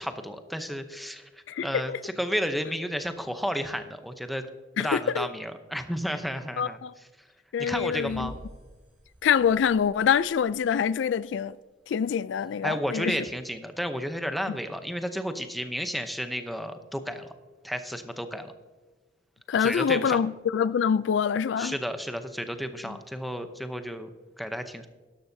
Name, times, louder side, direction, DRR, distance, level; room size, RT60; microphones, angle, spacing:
voice 1, 0.0-4.5 4.8-6.8 7.6-8.3 12.6-17.3 17.6-18.5 19.6-20.2 21.6-24.1 24.4-24.9, equal, ahead, 0.7 m, -32 dB
voice 2, 1.5-2.0 4.8-5.3 6.6-6.9 7.5-8.3 9.2-11.6 11.9-13.2 19.5-21.7, left 7 dB, 75° left, 0.3 m, -25 dB
sound 1, 7.7-11.0, equal, 40° right, 2.8 m, -48 dB
12.0 x 11.5 x 2.7 m
head